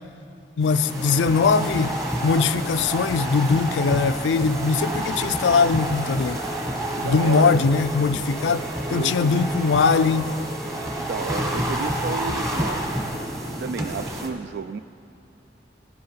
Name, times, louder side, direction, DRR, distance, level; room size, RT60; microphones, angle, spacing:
voice 1, 0.6-1.9 2.2-6.4 7.0-10.4, left 5 dB, 85° left, 0.4 m, -21 dB
sound 1, 0.6-14.3, right 1 dB, 20° right, 1.4 m, -29 dB
sound 2, 0.6-13.6, right 1 dB, 35° right, 1.3 m, -41 dB
sound 3, 0.7-6.4, right 2 dB, 90° right, 1.3 m, -46 dB
voice 2, 7.0-7.6 8.9-9.5 11.0-13.1 13.4-14.8, right 5 dB, 65° right, 0.3 m, -32 dB
17.0 x 7.8 x 5.7 m
head